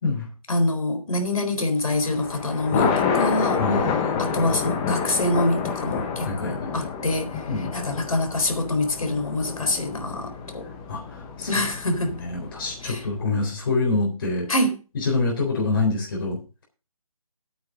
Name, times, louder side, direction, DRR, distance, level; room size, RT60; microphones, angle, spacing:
voice 1, 0.5-3.6 4.2-10.7 11.5-12.1 12.8-13.0 14.5-14.8, left 1 dB, 70° left, 4.0 m, -25 dB
Thunder, 1.9-13.2, left 6 dB, 5° left, 0.5 m, -28 dB
voice 2, 3.6-4.2 6.2-6.9 7.5-7.7 10.9-11.5 12.2-14.5 14.9-16.6, left 3 dB, 40° left, 3.8 m, -26 dB
10.5 x 8.8 x 5.1 m
figure-of-eight pair, 165°, 19 cm